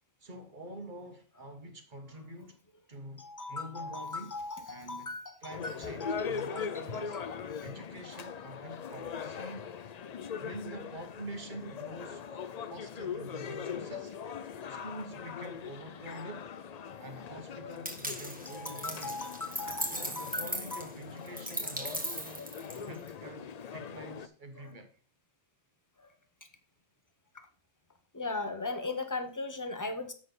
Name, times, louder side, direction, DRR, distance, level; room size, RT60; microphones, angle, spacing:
voice 1, 0.2-2.6 2.9-4.3 4.7-5.1 5.4-7.2 7.6-9.7 10.3-12.4 12.7-14.1 14.7-16.5 17.0-19.3 19.8-25.0, right 1 dB, 40° right, 1.4 m, -46 dB
voice 2, 3.2-5.7 6.0-7.3 17.6-17.7 18.5-20.8 22.4-22.5 24.6-24.7 28.1-30.1, left 3 dB, 15° left, 1.0 m, -39 dB
sound 1, 5.5-24.3, left 7 dB, 60° left, 0.4 m, -41 dB
sound 2, 17.8-23.1, right 1 dB, 5° right, 1.2 m, -38 dB
7.8 x 5.9 x 5.3 m
omnidirectional pair, 1.3 m